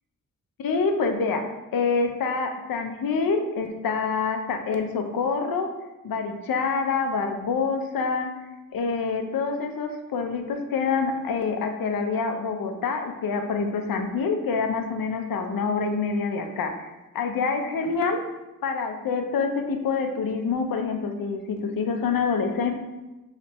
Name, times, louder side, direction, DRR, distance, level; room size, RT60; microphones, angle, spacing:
voice 1, 0.6-5.7 6.0-18.2 18.6-22.7, left 4 dB, 85° left, 5 dB, 0.6 m, -26 dB
4.3 x 3.2 x 2.9 m, 1.1 s
wide cardioid pair, 180°, 34 cm